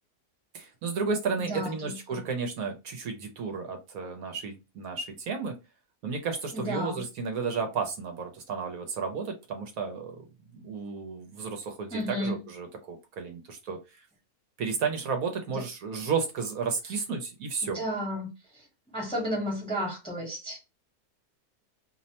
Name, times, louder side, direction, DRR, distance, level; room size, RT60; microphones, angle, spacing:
voice 1, 0.5-5.6 6.0-10.2 10.5-14.0 14.6-17.8, right 5 dB, 70° right, 1.1 m, -33 dB
voice 2, 1.4-2.2 6.5-7.0 11.9-12.4 15.5-15.6 17.6-18.6 18.9-20.6, equal, 5° left, 0.8 m, -33 dB
2.8 x 2.1 x 2.8 m
omnidirectional pair, 1.6 m